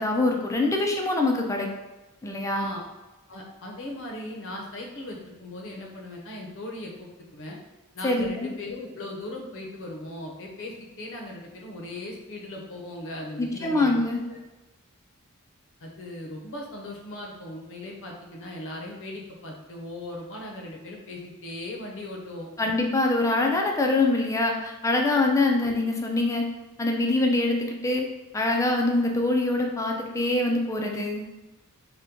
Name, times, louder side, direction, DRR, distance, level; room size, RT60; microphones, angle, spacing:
voice 1, 0.0-1.7 2.2-2.7 8.0-8.5 13.4-14.2 22.6-26.5 26.8-28.1 28.3-31.3, left 2 dB, 15° left, 1 dB, 0.3 m, -24 dB
voice 2, 2.5-2.8 3.3-7.6 7.9-14.0 14.3-14.4 15.8-22.8, left 1 dB, 60° left, 0 dB, 0.6 m, -38 dB
2.8 x 2.1 x 3.6 m, 1.1 s
head